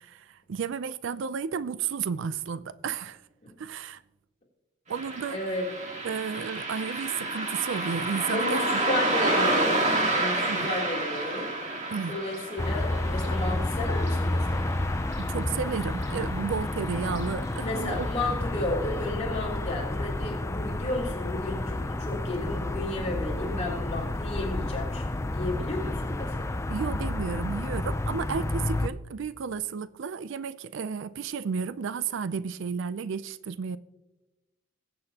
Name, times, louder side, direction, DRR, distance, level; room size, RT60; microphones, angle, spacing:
voice 1, 0.0-3.2 3.6-4.0 4.9-5.4 6.0-8.7 10.5-10.7 11.9-12.2 15.2-18.1 26.7-33.8, right 6 dB, 65° right, 0.4 m, -32 dB
Car passing by, 4.9-15.7 16.0-16.1 17.1-17.2 17.7-17.8 18.3-18.4, right 2 dB, 35° right, 1.8 m, -30 dB
voice 2, 5.3-5.7 8.3-11.5 12.1-14.8 17.6-26.6, left 2 dB, 35° left, 3.1 m, -33 dB
sound 1, 12.6-28.9, left 2 dB, 15° left, 0.4 m, -30 dB
21.0 x 7.9 x 2.8 m
head